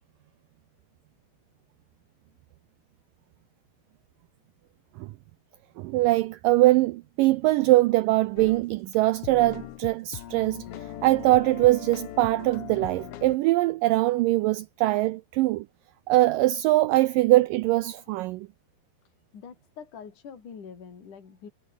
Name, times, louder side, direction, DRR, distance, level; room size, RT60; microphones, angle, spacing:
voice 1, 5.8-10.6 11.0-15.7 16.1-18.5, right 17 dB, 85° right, 1.9 m, -22 dB
sound 1, 8.4-8.6 8.9-9.0 9.2-13.4, left 11 dB, 85° left, 1.3 m, -40 dB
voice 2, 19.3-21.5, left 6 dB, 55° left, 5.4 m, -44 dB
omnidirectional pair, 4.5 m